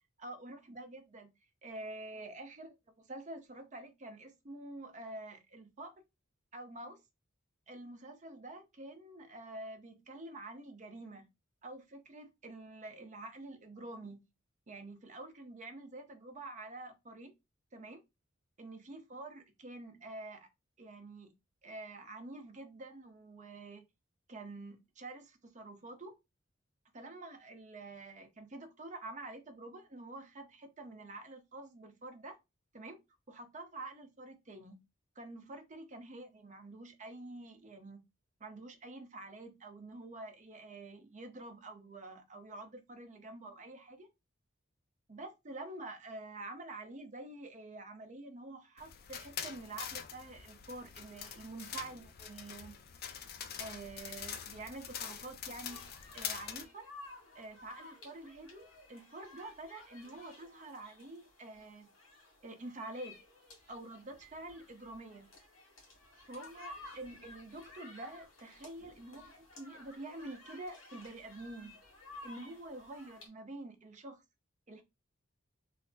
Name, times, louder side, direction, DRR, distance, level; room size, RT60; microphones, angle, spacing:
voice 1, 0.2-1.3 1.6-5.9 6.5-7.0 7.7-11.3 11.6-14.3 14.7-17.3 17.7-18.0 18.6-20.5 20.8-21.3 21.6-23.8 24.3-26.2 26.9-32.4 32.7-33.0 33.3-34.8 35.2-38.0 38.4-44.1 45.1-52.8 53.6-56.9 57.3-61.9 62.4-63.2 63.7-65.3 66.3-71.8 72.2-74.2 74.7-74.8, right 2 dB, 35° right, 0.7 m, -47 dB
sound 1, 48.8-56.6, left 8 dB, 50° left, 0.4 m, -44 dB
sound 2, 55.7-73.3, left 2 dB, 80° left, 1.9 m, -55 dB
3.3 x 2.0 x 3.9 m
head